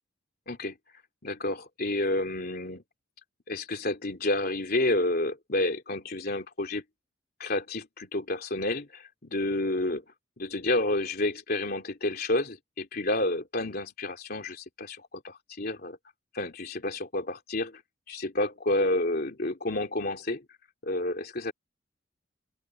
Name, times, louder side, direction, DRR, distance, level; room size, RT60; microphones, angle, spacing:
voice 1, 0.5-0.8 1.2-2.8 3.5-6.8 7.4-10.0 10.4-16.0 16.3-17.8 18.1-20.4 20.8-21.5, left 2 dB, 55° left, 3.1 m, -30 dB
open air
head